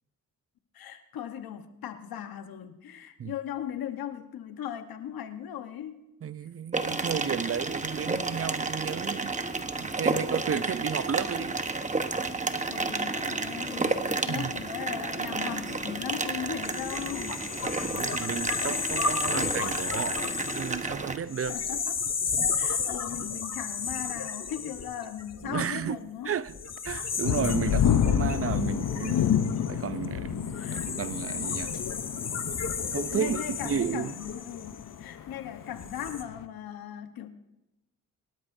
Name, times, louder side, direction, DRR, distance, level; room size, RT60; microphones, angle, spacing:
voice 1, 0.7-6.0 10.5-10.6 12.7-17.4 21.5-22.1 22.6-26.3 29.1-29.3 30.6-30.9 33.1-37.3, left 9 dB, 85° left, 1.2 m, -38 dB
voice 2, 6.2-9.4 9.8-11.6 14.3-14.5 17.7-21.6 23.2-23.3 25.4-26.0 26.2-26.6 26.8-29.3 29.6-31.8 32.9-34.1, right 8 dB, 40° right, 0.6 m, -33 dB
sound 1, 6.7-21.2, right 3 dB, 20° right, 1.1 m, -31 dB
sound 2, 16.6-25.8 26.5-35.2 35.7-36.2, left 5 dB, 45° left, 1.4 m, -33 dB
sound 3, 27.2-36.4, left 9 dB, 65° left, 0.8 m, -29 dB
23.5 x 12.5 x 2.7 m
cardioid pair, 65°, 35 cm